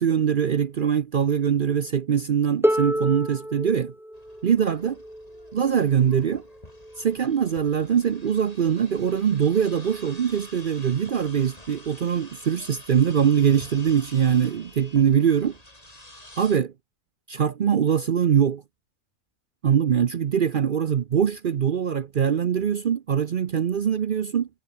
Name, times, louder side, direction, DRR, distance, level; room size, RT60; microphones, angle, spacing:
voice 1, 0.0-3.9 4.4-4.9 5.5-6.4 7.0-15.6 16.4-16.7 17.3-18.6 19.6-24.5, right 8 dB, 55° right, 0.6 m, -22 dB
Harp, 2.6-8.4 9.5-9.6, equal, 5° right, 0.4 m, -30 dB
sound 1, 4.1-16.6, left 1 dB, 25° left, 5.3 m, -48 dB
omnidirectional pair, 1.6 m